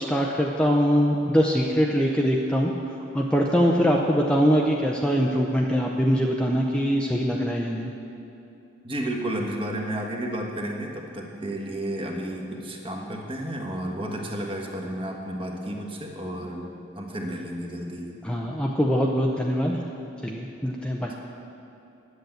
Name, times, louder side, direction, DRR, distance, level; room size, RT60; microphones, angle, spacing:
voice 1, 0.0-2.7 3.1-7.9 18.2-19.8 20.2-21.1, equal, 5° left, -1 dB, 0.6 m, -23 dB
voice 2, 8.8-16.7 16.9-18.1, right 1 dB, 25° right, 0 dB, 1.3 m, -32 dB
10.0 x 8.0 x 7.9 m, 2.8 s
head